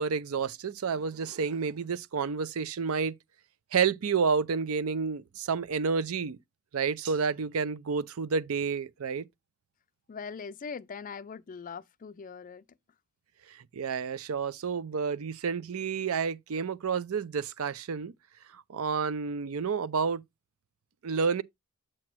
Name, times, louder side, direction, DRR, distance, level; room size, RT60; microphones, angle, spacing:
voice 1, 0.0-3.1 3.7-6.4 6.7-9.3 13.7-18.1 18.5-20.2 21.0-21.4, right 5 dB, 70° right, 0.5 m, -30 dB
voice 2, 10.1-12.6, left 5 dB, 35° left, 0.4 m, -41 dB
7.5 x 2.9 x 6.0 m
head